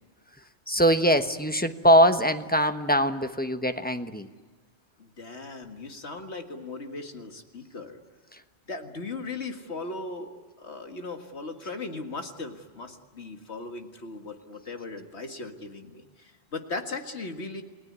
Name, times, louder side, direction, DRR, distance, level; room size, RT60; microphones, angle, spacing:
voice 1, 0.7-4.3, equal, 10° left, 8 dB, 1.1 m, -22 dB
voice 2, 5.0-8.0 8.7-17.6, left 3 dB, 70° left, 6 dB, 2.1 m, -38 dB
29.5 x 19.0 x 9.6 m, 1.5 s
omnidirectional pair, 1.1 m